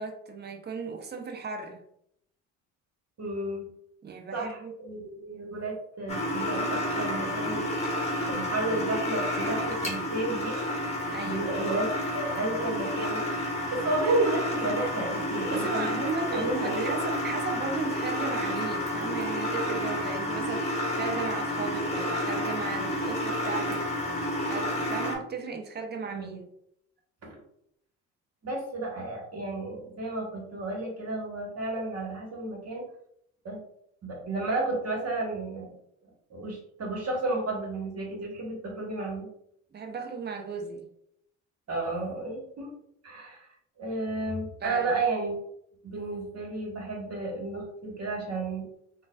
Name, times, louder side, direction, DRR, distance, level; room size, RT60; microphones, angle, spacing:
voice 1, 0.0-1.8 4.0-4.7 11.1-11.5 15.5-23.9 24.4-26.4 39.7-40.9 44.6-44.9, right 4 dB, 30° right, 3 dB, 0.7 m, -35 dB
voice 2, 3.2-3.7 4.3-7.7 8.3-10.6 11.2-13.3 13.5-15.8 16.3-16.9 26.1-26.4 27.2-27.4 28.4-32.8 33.4-33.6 34.0-35.7 36.3-39.3 41.7-42.7 43.0-43.5 43.8-45.3 45.8-48.7, right 2 dB, 45° right, -1 dB, 1.4 m, -32 dB
sound 1, 6.1-25.2, left 1 dB, 20° left, 1.2 m, -30 dB
3.7 x 2.4 x 2.4 m, 0.73 s
hypercardioid pair, 60°, 35 cm